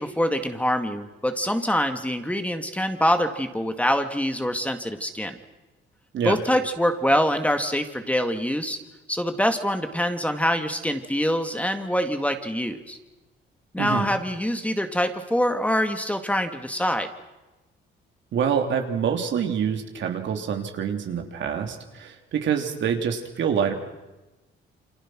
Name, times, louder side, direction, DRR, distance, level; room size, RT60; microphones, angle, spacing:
voice 1, 0.0-5.4 6.2-8.8 9.1-13.0 13.7-17.1, equal, 5° left, 7 dB, 2.2 m, -25 dB
voice 2, 18.3-23.7, right 7 dB, 70° right, 4 dB, 3.2 m, -26 dB
29.0 x 25.5 x 6.2 m, 1.1 s
cardioid pair, 90°, 20 cm